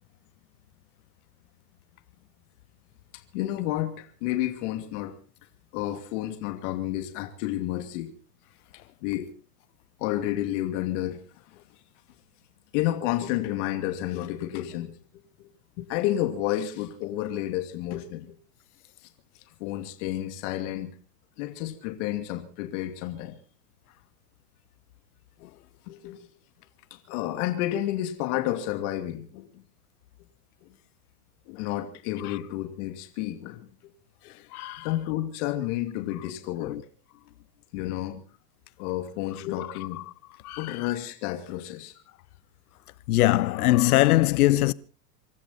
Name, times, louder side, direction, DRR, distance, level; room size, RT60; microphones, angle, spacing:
voice 1, 3.3-5.1 5.7-8.1 9.0-9.3 10.0-11.2 12.7-15.0 15.4-15.5 15.8-18.3 19.6-20.9 21.4-23.3 25.9-26.3 26.9-29.6 30.6-30.7 31.5-33.7 34.8-36.8 37.7-38.2 38.8-40.0 40.6-41.9, left 13 dB, 50° left, 2.7 m, -30 dB
voice 2, 34.5-34.9 36.6-36.8 40.4-40.6 43.1-44.7, left 17 dB, 65° left, 0.9 m, -21 dB
25.5 x 13.5 x 4.2 m
hypercardioid pair, 140°, 48 cm